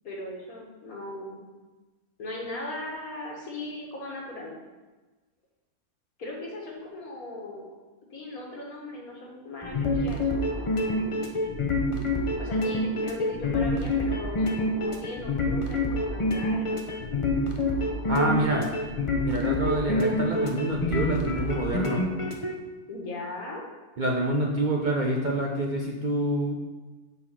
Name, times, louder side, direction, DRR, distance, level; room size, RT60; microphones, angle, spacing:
voice 1, 0.0-1.4 2.2-4.6 6.2-7.7 8.1-11.0 12.4-17.2 22.9-23.6, left 2 dB, 75° left, -2 dB, 2.0 m, -38 dB
sound 1, 9.6-22.5, left 1 dB, 30° left, 0.6 m, -27 dB
voice 2, 18.1-18.7 19.2-22.0 24.0-26.5, right 1 dB, 40° right, -1 dB, 0.7 m, -27 dB
7.1 x 4.2 x 5.7 m, 1.3 s
omnidirectional pair, 1.5 m